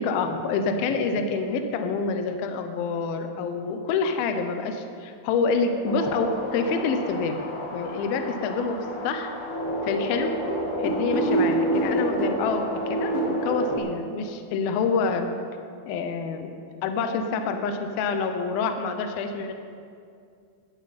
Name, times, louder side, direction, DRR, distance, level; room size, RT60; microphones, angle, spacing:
voice 1, 0.0-7.4 7.7-8.8 9.0-9.3 9.8-10.3 10.8-15.3 15.9-16.6 16.8-19.5, left 4 dB, 85° left, 6 dB, 2.1 m, -27 dB
sound 1, 5.9-13.8, right 1 dB, 60° left, 1.3 m, -28 dB
17.0 x 13.5 x 4.3 m, 2.4 s
omnidirectional pair, 5.5 m